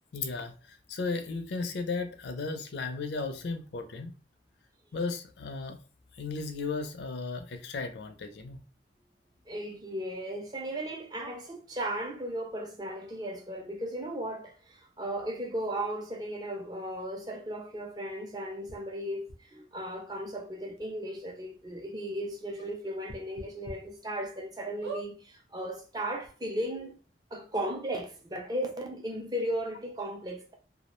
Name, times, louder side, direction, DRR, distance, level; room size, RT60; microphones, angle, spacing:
voice 1, 0.1-4.1 4.9-5.8 6.1-8.6, left 4 dB, 75° left, 0.4 m, -35 dB
voice 2, 9.5-26.9 27.3-30.5, right 1 dB, 20° right, 0.4 m, -36 dB
sound 1, 18.7-18.8 19.3-19.4 20.3-20.4 20.8-20.9 21.3-21.4 23.0-23.7 24.2-24.3 24.8-25.1 25.9-26.0 26.2-26.3, right 3 dB, 65° right, 0.6 m, -40 dB
2.3 x 2.0 x 2.9 m
head